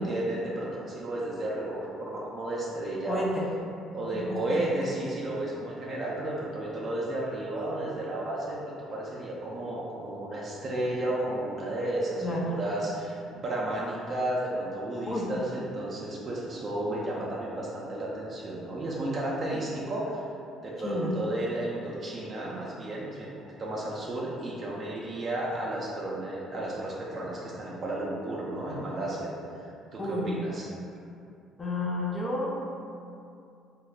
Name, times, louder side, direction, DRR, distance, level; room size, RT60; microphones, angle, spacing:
voice 1, 0.0-3.2 3.9-20.2 20.6-30.7, right 1 dB, 45° right, -4 dB, 0.5 m, -33 dB
voice 2, 3.1-3.5 4.1-4.5 12.2-12.5 15.1-15.3 20.8-21.1 30.0-30.3 31.6-32.5, left 1 dB, 30° left, -3 dB, 0.6 m, -31 dB
2.3 x 2.2 x 3.4 m, 2.5 s
hypercardioid pair, 60°, 0 cm